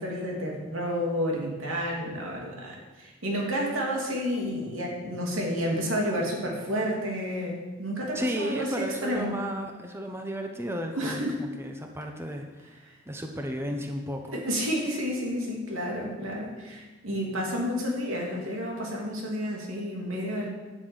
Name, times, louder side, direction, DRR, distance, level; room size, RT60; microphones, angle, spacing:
voice 1, 0.0-9.3 10.9-11.4 14.3-20.5, equal, 90° right, -1 dB, 3.1 m, -30 dB
voice 2, 8.1-12.8 13.1-14.4, equal, 10° right, 3 dB, 0.9 m, -34 dB
11.5 x 6.8 x 8.1 m, 1.2 s
head